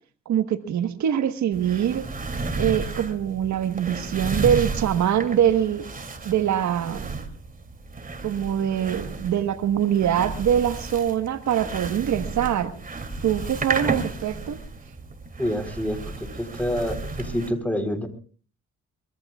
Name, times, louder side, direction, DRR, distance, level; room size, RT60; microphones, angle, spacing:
voice 1, 0.2-2.1 2.6-5.9 6.2-7.1 8.2-12.7 13.2-14.6, right 9 dB, 70° right, 8 dB, 1.4 m, -23 dB
sound 1, 1.5-17.5, right 3 dB, 30° right, 2.9 m, -33 dB
voice 2, 15.4-16.0 16.4-18.1, equal, 5° left, 7 dB, 4.0 m, -27 dB
24.5 x 22.5 x 2.4 m, 0.41 s
cardioid pair, 90°, 30 cm